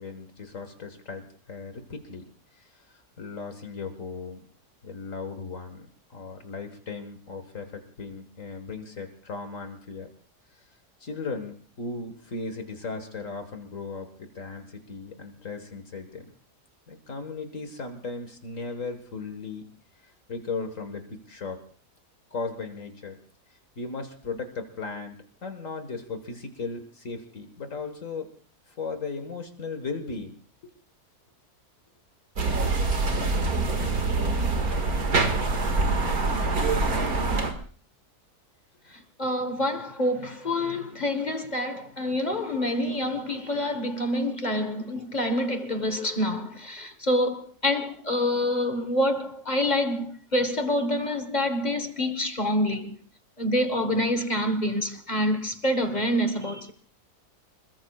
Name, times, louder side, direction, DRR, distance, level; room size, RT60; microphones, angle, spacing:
voice 1, 0.0-2.3 2.6-4.4 4.8-10.1 11.0-16.3 16.9-19.7 20.0-21.6 22.3-23.2 23.8-25.2 25.4-28.3 28.7-30.4 38.9-39.0, left 4 dB, 55° left, 1.9 m, -37 dB
sound 1, 32.4-37.5, right 3 dB, 70° right, 2.4 m, -25 dB
voice 2, 38.9-53.0 53.4-56.7, left 1 dB, 30° left, 1.4 m, -27 dB
26.5 x 21.5 x 2.4 m
omnidirectional pair, 1.7 m